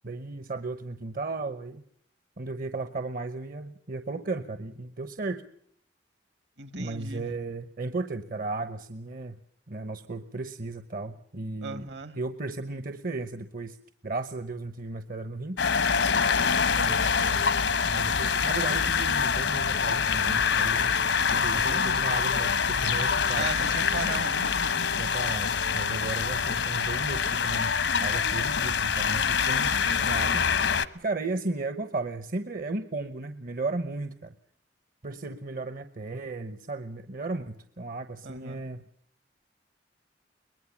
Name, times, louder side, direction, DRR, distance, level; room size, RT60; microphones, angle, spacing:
voice 1, 0.0-1.8 2.4-5.4 6.7-9.4 9.7-11.8 12.2-13.8 14.0-15.6 16.8-17.5 17.9-21.0 21.3-23.7 25.0-30.4 30.9-34.3 35.0-38.8, right 3 dB, 50° right, 0.9 m, -35 dB
voice 2, 6.6-7.3 11.6-12.2 21.3-22.0 23.3-25.1 28.8-29.6 38.2-38.6, right 3 dB, 70° right, 1.9 m, -38 dB
sound 1, 15.6-30.9, left 6 dB, 80° left, 1.1 m, -25 dB
23.0 x 20.0 x 7.2 m
head